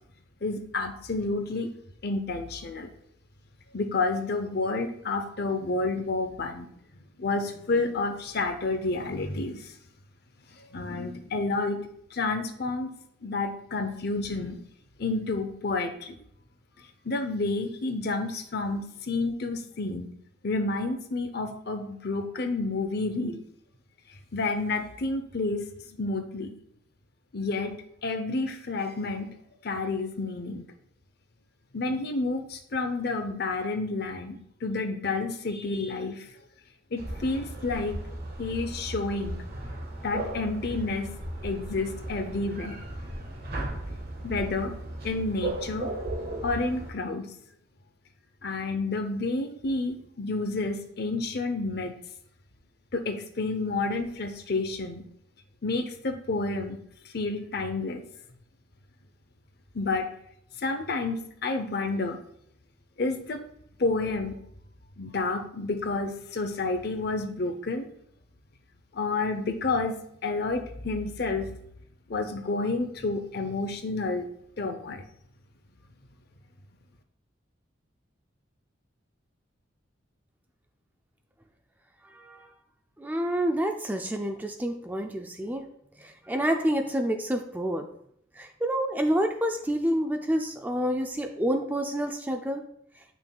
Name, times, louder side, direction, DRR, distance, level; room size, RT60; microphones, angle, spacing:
voice 1, 0.4-1.7 2.0-2.9 3.7-6.7 7.2-9.7 10.7-12.9 13.2-14.6 15.0-16.1 17.0-20.1 20.4-23.4 24.3-26.5 27.3-27.8 28.0-29.3 29.6-30.6 31.7-36.3 36.9-38.0 38.4-39.4 40.0-41.1 41.4-42.8 44.2-44.7 45.0-45.9 46.4-47.3 48.4-51.9 52.9-55.0 55.6-56.8 57.1-58.0 59.7-60.1 60.6-62.2 63.0-63.4 63.8-64.4 65.0-67.9 68.9-71.5 72.1-74.3 74.6-75.0, left 3 dB, 50° left, 6 dB, 0.7 m, -30 dB
sound 1, 37.0-46.9, right 1 dB, 50° right, 1.4 m, -36 dB
voice 2, 82.2-82.5 83.0-85.7 86.0-87.8 88.4-92.6, equal, 10° right, 4 dB, 0.3 m, -28 dB
8.7 x 5.9 x 2.3 m, 0.70 s
head